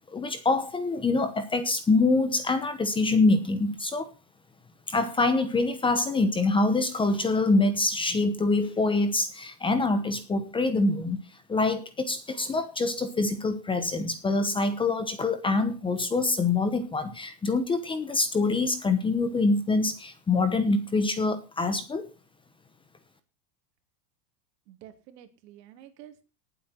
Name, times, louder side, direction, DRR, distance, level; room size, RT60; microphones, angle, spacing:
voice 1, 0.1-4.1 4.9-11.2 11.5-22.1, left 3 dB, 10° left, 10 dB, 0.9 m, -25 dB
voice 2, 24.7-26.3, right 11 dB, 75° right, 7 dB, 3.0 m, -50 dB
19.0 x 8.0 x 4.4 m, 0.30 s
supercardioid pair, 165°, 49 cm